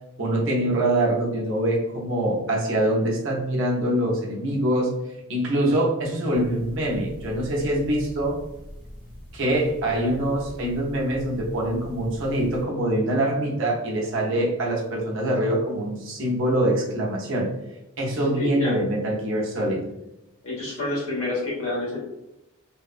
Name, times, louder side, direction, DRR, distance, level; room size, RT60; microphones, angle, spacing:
voice 1, 0.2-4.9 5.3-8.4 9.3-17.5 18.0-19.8, right 1 dB, 60° right, -2 dB, 0.6 m, -24 dB
sound 1, 6.3-12.7, equal, 5° right, 0.6 m, -42 dB
voice 2, 18.4-18.8 20.4-22.1, left 2 dB, 70° left, -5 dB, 1.2 m, -28 dB
2.7 x 2.1 x 2.4 m, 0.92 s
head